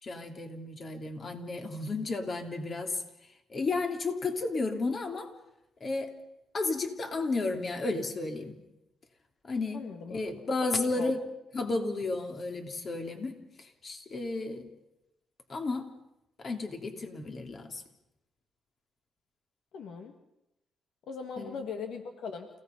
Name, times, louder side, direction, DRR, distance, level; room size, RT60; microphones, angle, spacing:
voice 1, 0.0-3.0 3.5-5.3 5.8-6.1 6.5-8.5 9.4-9.8 10.1-11.2 11.5-14.7 15.5-15.9 16.4-17.8 21.4-21.6, left 3 dB, 40° left, 4 dB, 3.3 m, -33 dB
voice 2, 9.7-10.3 10.8-11.1 19.7-20.1 21.1-22.5, left 5 dB, 75° left, 5 dB, 2.0 m, -39 dB
29.0 x 17.5 x 5.5 m, 0.88 s
cardioid pair, 90°, 0 cm